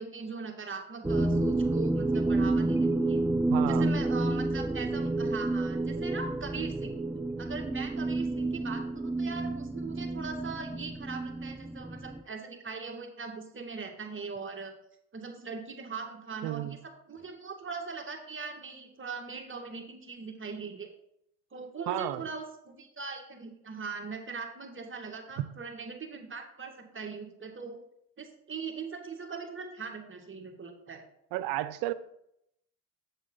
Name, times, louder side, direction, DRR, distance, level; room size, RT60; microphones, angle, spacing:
voice 1, 0.0-3.2 3.6-7.0 7.4-14.7 15.1-20.9 21.5-27.8 28.2-31.0, right 4 dB, 30° right, 3 dB, 2.1 m, -40 dB
sound 1, 1.0-12.2, right 2 dB, 5° right, 0.6 m, -29 dB
voice 2, 3.5-3.9 16.4-16.8 21.9-22.2 31.3-31.9, right 15 dB, 85° right, 15 dB, 0.6 m, -32 dB
7.4 x 7.2 x 3.9 m, 0.75 s
supercardioid pair, 65°, 38 cm